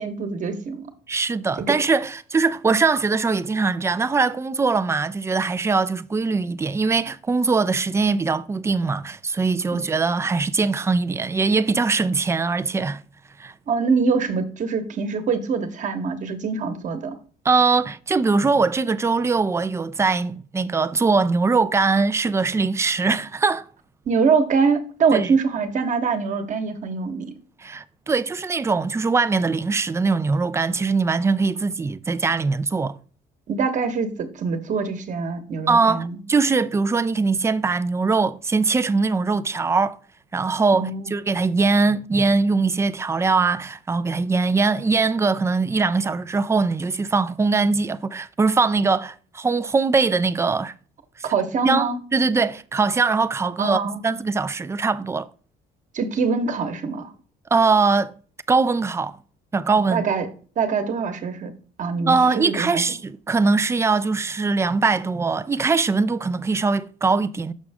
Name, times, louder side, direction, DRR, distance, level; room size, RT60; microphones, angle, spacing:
voice 1, 0.0-0.9 1.6-1.7 13.7-17.1 24.1-27.3 33.5-36.2 40.7-41.1 51.3-52.0 53.6-54.0 55.9-57.1 59.9-60.3 60.6-61.5 61.8-62.8, right 5 dB, 45° right, 1.2 m, -24 dB
voice 2, 1.1-13.0 13.4-13.5 17.5-23.7 25.1-25.3 27.6-33.0 35.7-40.0 40.3-50.7 51.6-55.3 57.5-58.1 58.5-59.2 59.5-60.1 62.0-67.5, right 4 dB, 15° right, 0.4 m, -21 dB
6.3 x 6.2 x 3.5 m
cardioid pair, 110°, 17 cm